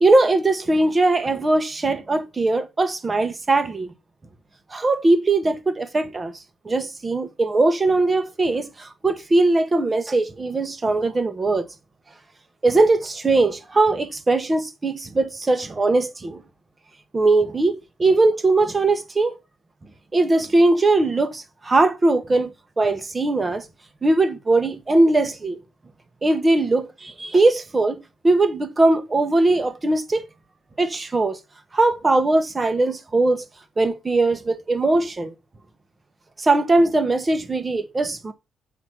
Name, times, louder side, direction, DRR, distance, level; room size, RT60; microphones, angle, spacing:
voice 1, 0.0-3.9 4.7-6.3 6.6-11.6 12.6-16.4 17.1-19.4 20.1-23.6 24.0-25.6 26.2-30.2 30.8-31.4 31.7-33.4 33.8-35.3 36.4-38.3, right 2 dB, 25° right, 1.1 m, -20 dB
7.7 x 3.0 x 5.9 m
cardioid pair, 90°, 0 cm